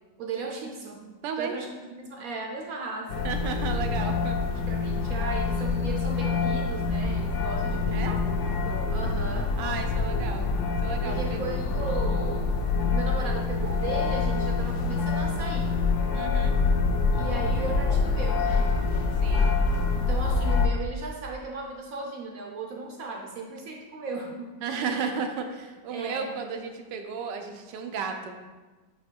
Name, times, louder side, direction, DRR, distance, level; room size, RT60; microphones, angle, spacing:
voice 1, 0.2-1.1 1.4-3.3 4.7-8.4 8.7-9.5 11.0-12.4 12.9-15.8 17.1-18.7 19.9-24.6 25.9-26.3, right 4 dB, 65° right, 1 dB, 1.0 m, -36 dB
voice 2, 1.2-1.6 3.2-4.4 7.9-8.2 9.6-10.5 10.8-11.4 16.1-16.6 19.2-19.6 24.6-28.4, right 5 dB, 85° right, 5 dB, 1.4 m, -33 dB
sound 1, 3.1-20.7, left 4 dB, 70° left, 0.7 m, -26 dB
8.5 x 3.1 x 4.4 m, 1.3 s
omnidirectional pair, 1.9 m